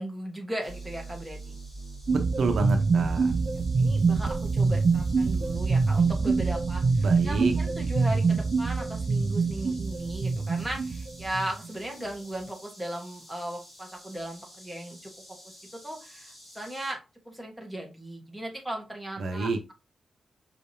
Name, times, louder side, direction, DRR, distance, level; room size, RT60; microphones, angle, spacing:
voice 1, 0.0-1.6 3.5-15.1 15.4-17.0 17.2-19.7, right 1 dB, ahead, 0 dB, 1.2 m, -37 dB
sound 1, 0.6-16.9, left 1 dB, 25° left, 2.5 m, -52 dB
sound 2, 0.7-7.5, right 3 dB, 20° right, 1.4 m, -41 dB
sound 3, 2.1-11.7, right 4 dB, 45° right, 0.5 m, -25 dB
voice 2, 2.1-3.3 7.0-7.5 19.2-19.6, right 3 dB, 65° right, 4 dB, 0.8 m, -29 dB
5.7 x 3.4 x 2.7 m, 0.28 s
wide cardioid pair, 155°, 0 cm